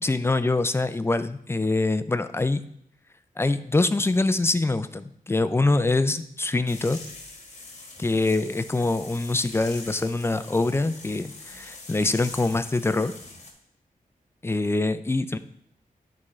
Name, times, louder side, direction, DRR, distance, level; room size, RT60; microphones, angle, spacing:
voice 1, 0.0-2.6 3.4-7.0 8.0-13.1 14.4-15.4, left 2 dB, 15° left, 12 dB, 0.4 m, -24 dB
sound 1, 6.7-13.5, left 2 dB, 50° left, 1.2 m, -43 dB
11.0 x 3.7 x 3.2 m, 0.68 s
wide cardioid pair, 80°, 15 cm